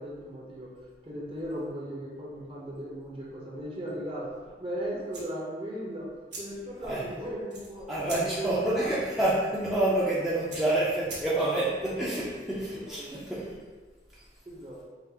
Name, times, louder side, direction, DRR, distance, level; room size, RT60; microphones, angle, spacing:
voice 1, 0.0-4.3 4.6-6.1 6.4-7.9 8.2-9.0 12.2-12.3 12.7-13.3 14.5-14.8, right 1 dB, 30° right, -5 dB, 0.9 m, -37 dB
sound 1, 5.1-11.7, right 2 dB, 80° right, 1.4 m, -46 dB
voice 2, 7.9-13.6 14.1-14.2, right 1 dB, ahead, -9 dB, 0.5 m, -28 dB
5.6 x 2.5 x 2.9 m, 1.4 s
head